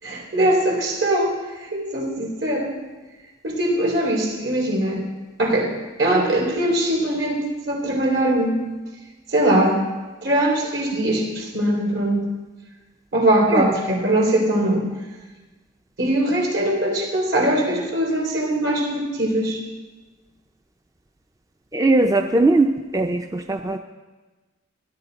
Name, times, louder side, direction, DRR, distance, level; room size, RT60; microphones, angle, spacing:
voice 1, 0.0-2.7 3.4-5.0 5.4-5.7 6.0-8.7 9.3-9.8 10.2-12.2 13.1-14.9 16.0-19.6, right 1 dB, 70° right, -2 dB, 3.5 m, -21 dB
voice 2, 21.7-22.7 22.9-23.2 23.5-23.8, right 2 dB, 15° right, 5 dB, 0.4 m, -18 dB
17.0 x 11.5 x 4.0 m, 1.2 s
head